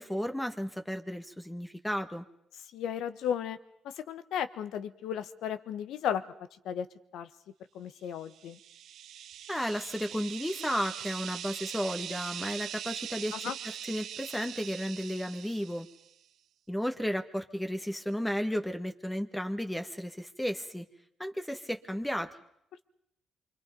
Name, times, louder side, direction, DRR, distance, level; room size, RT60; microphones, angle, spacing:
voice 1, 0.0-2.2 9.5-15.9 16.7-20.9 21.2-22.3, equal, 5° left, 7 dB, 1.4 m, -33 dB
voice 2, 2.7-3.6 3.8-6.2 6.6-6.9 7.1-7.3 7.7-8.6 13.3-13.6, left 9 dB, 80° left, 12 dB, 1.2 m, -34 dB
sound 1, 8.3-16.1, right 10 dB, 75° right, 0.8 m, -42 dB
26.0 x 24.5 x 5.3 m, 0.75 s
cardioid pair, 90°, 0 cm